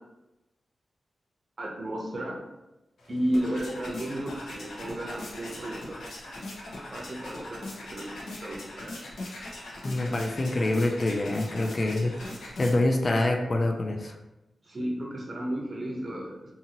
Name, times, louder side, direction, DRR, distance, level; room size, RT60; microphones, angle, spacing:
voice 1, 1.6-2.4 3.1-6.0 6.9-9.0 9.3-9.4 14.6-16.3, right 1 dB, 40° right, -2 dB, 0.6 m, -33 dB
sound 1, 3.0-13.1, left 1 dB, 90° left, 0.7 m, -40 dB
voice 2, 9.8-12.2 12.6-14.2, left 2 dB, 40° left, 3 dB, 0.3 m, -26 dB
2.6 x 2.6 x 2.8 m, 0.98 s
cardioid pair, 80°, 0 cm